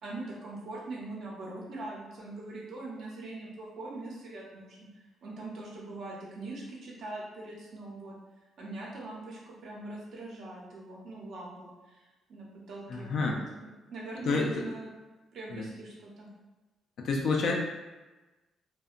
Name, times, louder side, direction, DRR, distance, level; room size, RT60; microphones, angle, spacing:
voice 1, 0.0-4.8 5.2-8.1 8.6-12.0 12.3-14.9 15.3-16.3, right 2 dB, 70° right, -3 dB, 0.8 m, -42 dB
voice 2, 12.9-13.4 14.2-14.6 15.5-15.7 17.0-17.5, left 3 dB, 70° left, 0 dB, 0.5 m, -29 dB
2.8 x 2.1 x 2.4 m, 1.1 s
cardioid pair, 90°, 0 cm